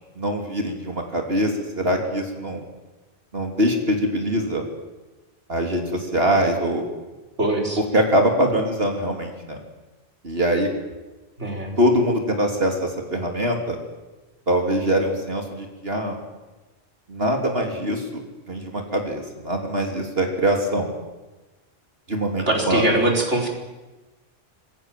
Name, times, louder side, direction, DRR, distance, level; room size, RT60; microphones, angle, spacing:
voice 1, 0.2-2.6 3.3-4.6 5.5-6.8 7.9-9.6 10.2-10.7 11.8-13.8 14.5-16.2 17.1-18.2 18.5-20.9 22.1-22.8, equal, 60° right, 3 dB, 3.4 m, -23 dB
voice 2, 7.4-7.8 11.4-11.8 22.5-23.5, right 1 dB, 80° right, 1 dB, 5.1 m, -22 dB
27.0 x 22.0 x 7.6 m, 1.2 s
omnidirectional pair, 1.2 m